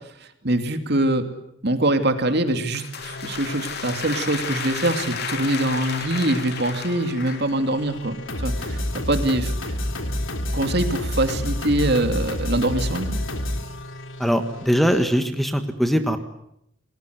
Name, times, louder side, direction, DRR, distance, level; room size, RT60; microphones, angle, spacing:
voice 1, 0.2-1.3 1.6-8.2 8.4-9.5 10.5-13.2, right 1 dB, 55° right, 7 dB, 2.6 m, -23 dB
sound 1, 2.5-7.6, left 6 dB, 55° left, 3.1 m, -33 dB
sound 2, 3.0-15.0, left 1 dB, 75° left, 3.5 m, -30 dB
voice 2, 14.2-16.2, equal, ahead, 7 dB, 1.5 m, -21 dB
30.0 x 21.0 x 8.0 m, 0.76 s
head